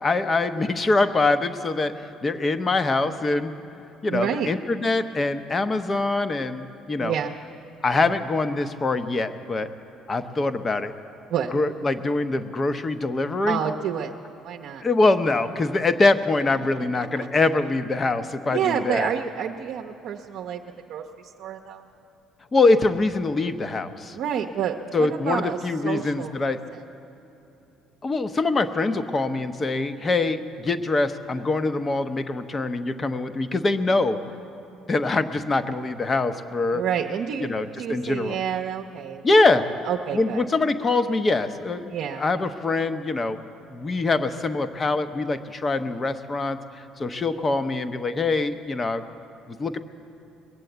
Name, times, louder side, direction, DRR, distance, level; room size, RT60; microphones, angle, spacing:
voice 1, 0.0-3.5 4.0-7.1 7.8-9.7 10.1-10.9 11.5-13.6 14.8-19.1 22.5-24.2 24.9-26.6 28.0-34.2 34.9-36.8 37.4-38.4 39.2-39.6 40.1-43.4 43.7-49.0 49.5-49.8, left 3 dB, 25° left, 11 dB, 0.7 m, -24 dB
voice 2, 4.1-4.5 7.0-7.4 11.3-11.5 13.5-14.1 14.4-14.8 17.2-17.3 18.5-20.6 20.9-21.8 24.1-26.8 36.7-40.4 41.9-42.3, right 8 dB, 65° right, 2 dB, 0.7 m, -29 dB
21.0 x 8.3 x 7.9 m, 2.9 s
cardioid pair, 120°, 0 cm